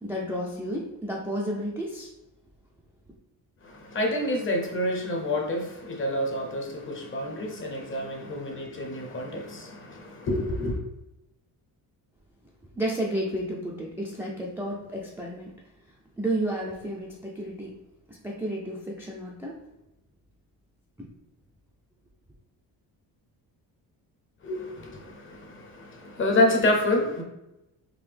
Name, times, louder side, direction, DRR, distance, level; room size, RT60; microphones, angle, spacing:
voice 1, 0.0-2.1 12.7-15.5 15.8-17.8 18.1-19.6 21.0-21.1, right 1 dB, 5° right, 0.3 m, -32 dB
voice 2, 3.6-10.8 24.4-27.2, left 1 dB, 30° left, 0.7 m, -28 dB
3.8 x 2.6 x 3.3 m
cardioid pair, 140°, 38 cm